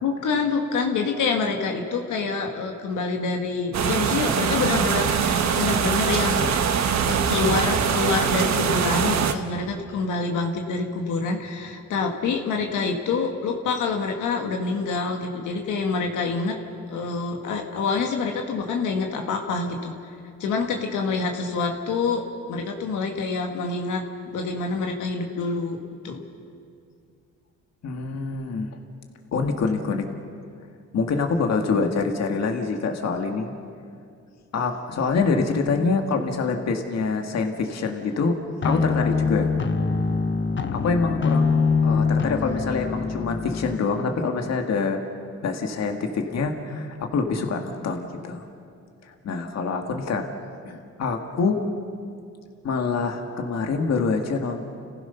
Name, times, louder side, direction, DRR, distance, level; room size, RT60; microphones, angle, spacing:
voice 1, 0.0-6.5 7.0-16.6 16.9-19.9 20.4-25.8 26.0-26.2, left 4 dB, 80° left, 2 dB, 2.0 m, -26 dB
sound 1, 3.7-9.3, right 7 dB, 65° right, 1.4 m, -23 dB
voice 2, 27.8-28.8 29.3-30.1 30.9-33.5 34.5-38.4 38.6-39.5 40.7-45.0 45.4-48.4 49.0-50.3 50.7-51.6 52.6-54.6, left 4 dB, 60° left, 4 dB, 2.0 m, -25 dB
sound 2, 38.6-43.8, left 5 dB, 40° left, 1.2 m, -23 dB
30.0 x 15.5 x 5.7 m, 2.4 s
cardioid pair, 90°, 30 cm